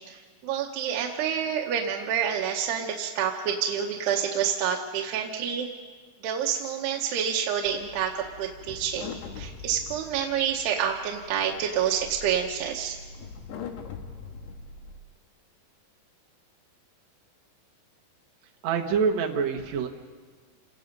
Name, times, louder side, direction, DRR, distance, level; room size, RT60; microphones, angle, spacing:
voice 1, 0.1-5.7 6.2-13.0, right 8 dB, 80° right, 0 dB, 3.1 m, -28 dB
sound 1, 7.7-15.0, left 5 dB, 85° left, 3.6 m, -43 dB
voice 2, 18.6-19.9, right 6 dB, 60° right, 2 dB, 1.9 m, -25 dB
28.5 x 18.5 x 5.3 m, 1.5 s
omnidirectional pair, 4.7 m